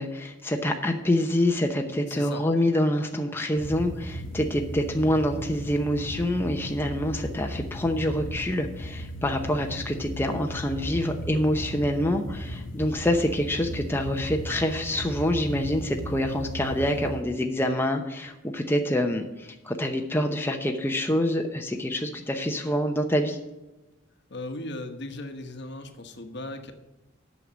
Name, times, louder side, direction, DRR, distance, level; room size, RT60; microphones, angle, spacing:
voice 1, 0.0-23.4, left 1 dB, 10° left, 3 dB, 0.8 m, -26 dB
voice 2, 2.1-2.4 17.6-17.8 24.3-26.7, left 2 dB, 60° left, 7 dB, 1.2 m, -37 dB
sound 1, 3.6-17.2, equal, 90° left, 1.1 m, -36 dB
8.4 x 6.5 x 7.4 m, 1.0 s
head